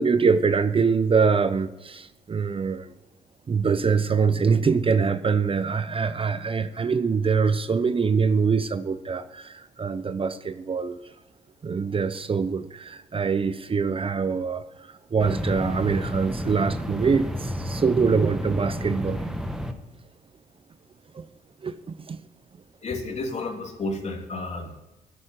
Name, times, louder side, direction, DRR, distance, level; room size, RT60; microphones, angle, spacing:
voice 1, 0.0-2.9 3.5-11.0 11.6-14.6 15.1-19.2 21.1-21.3 21.6-22.2, right 5 dB, 30° right, 13 dB, 0.7 m, -24 dB
sound 1, 15.2-19.7, left 1 dB, 5° right, 1.6 m, -31 dB
voice 2, 22.8-24.8, left 2 dB, 40° left, 2 dB, 2.9 m, -31 dB
11.5 x 8.5 x 7.6 m, 1.0 s
supercardioid pair, 70°, 17 cm